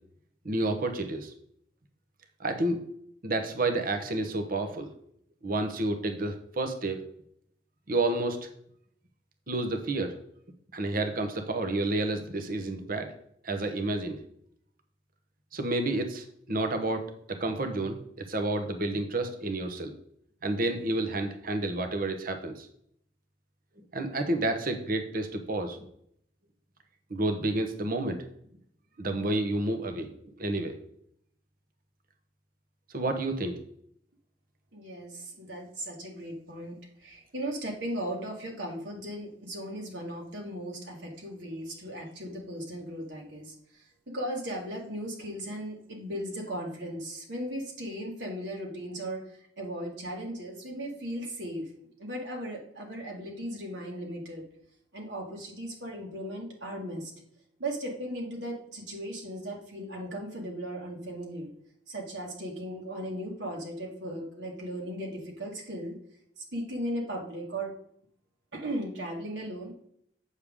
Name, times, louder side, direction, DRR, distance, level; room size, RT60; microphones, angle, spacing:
voice 1, 0.4-1.3 2.4-2.8 3.2-4.9 5.4-7.0 7.9-8.5 9.5-10.2 10.7-13.1 13.4-14.2 15.5-19.9 20.4-22.7 23.9-25.8 27.1-28.2 29.0-30.7 32.9-33.6, right 2 dB, 50° right, 6 dB, 1.0 m, -30 dB
voice 2, 34.7-43.5 44.1-49.2 49.6-51.6 52.0-54.4 54.9-57.1 57.6-61.5 61.9-65.9 66.4-67.7 68.5-69.7, right 1 dB, 70° right, -1 dB, 1.9 m, -37 dB
8.3 x 6.7 x 3.6 m, 0.69 s
head